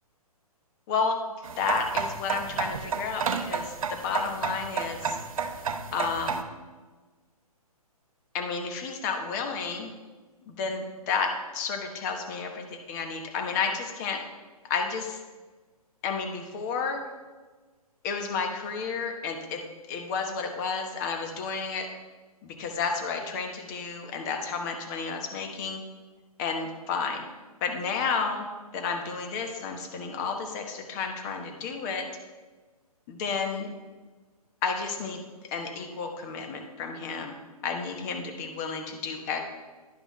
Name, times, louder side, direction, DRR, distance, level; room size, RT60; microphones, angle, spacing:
voice 1, 0.9-1.2 1.6-5.2 5.9-6.5 8.3-9.9 10.5-14.2 14.6-15.2 16.0-17.0 18.0-21.9 22.4-25.8 26.4-27.2 27.6-28.4 28.7-32.1 33.1-33.7 34.6-37.3 37.6-39.4, left 5 dB, 30° left, 4 dB, 1.0 m, -31 dB
sound 1, 1.4-6.4, right 5 dB, 60° right, 0.7 m, -31 dB
11.0 x 5.3 x 3.1 m, 1.3 s
figure-of-eight pair, 135°, 20 cm